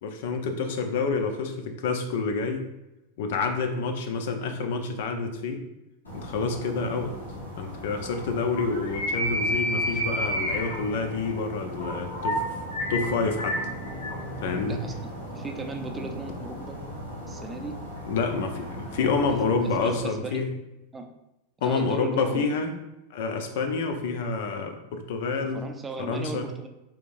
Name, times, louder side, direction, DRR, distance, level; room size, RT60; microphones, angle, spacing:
voice 1, 0.0-2.6 3.2-5.6 6.1-7.1 7.6-12.4 12.9-13.6 14.4-14.8 18.0-20.5 21.6-22.7 23.1-25.6 26.0-26.5, left 4 dB, 60° left, 6 dB, 0.6 m, -28 dB
sound 1, 6.0-20.0, equal, 85° left, 1.2 m, -33 dB
voice 2, 15.3-16.8 17.3-17.8 18.1-18.2 19.0-19.4 19.8-20.5 20.9-21.2 21.6-22.5 25.5-26.7, right 3 dB, 15° right, 5 dB, 0.5 m, -37 dB
4.5 x 3.6 x 2.5 m, 0.94 s
figure-of-eight pair, 90°, 0 cm